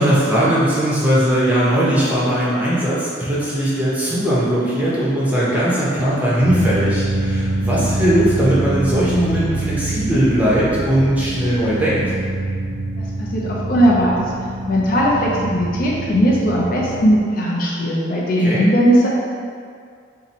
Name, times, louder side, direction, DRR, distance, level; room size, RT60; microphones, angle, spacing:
voice 1, 0.0-12.0 18.4-18.6, equal, 10° right, -9 dB, 0.6 m, -19 dB
sound 1, 6.4-17.2, right 2 dB, 70° right, 0.4 m, -25 dB
voice 2, 13.0-14.3 14.7-19.1, equal, 45° left, -4 dB, 0.4 m, -18 dB
2.8 x 2.5 x 4.1 m, 2.2 s
head